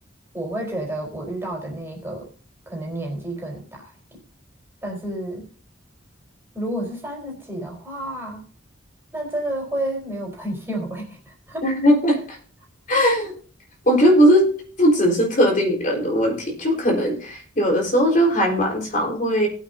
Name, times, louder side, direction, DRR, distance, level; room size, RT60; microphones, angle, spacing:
voice 1, 0.3-2.3 2.7-3.9 4.8-5.5 6.5-8.4 9.1-11.7, right 1 dB, 10° right, -1 dB, 4.1 m, -30 dB
voice 2, 11.6-12.4 12.9-13.3 13.8-14.5 14.8-19.5, equal, 40° left, -1 dB, 4.2 m, -19 dB
20.0 x 8.2 x 2.7 m, 0.43 s
head